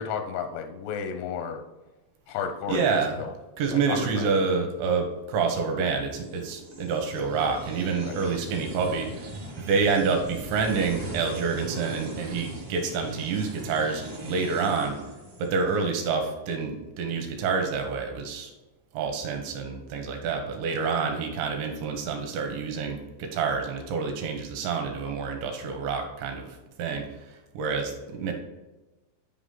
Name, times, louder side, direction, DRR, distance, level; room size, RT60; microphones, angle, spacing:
voice 1, 0.0-1.6 2.3-3.3 3.7-4.3 8.0-8.2, left 7 dB, 85° left, 7 dB, 2.4 m, -33 dB
voice 2, 2.7-3.2 3.6-9.3 9.6-15.0 15.4-18.5 18.9-27.1 27.5-28.3, right 5 dB, 75° right, 4 dB, 2.9 m, -28 dB
sound 1, 6.1-15.8, right 1 dB, 55° right, 1.5 m, -40 dB
9.7 x 4.9 x 3.8 m, 1.1 s
omnidirectional pair, 5.6 m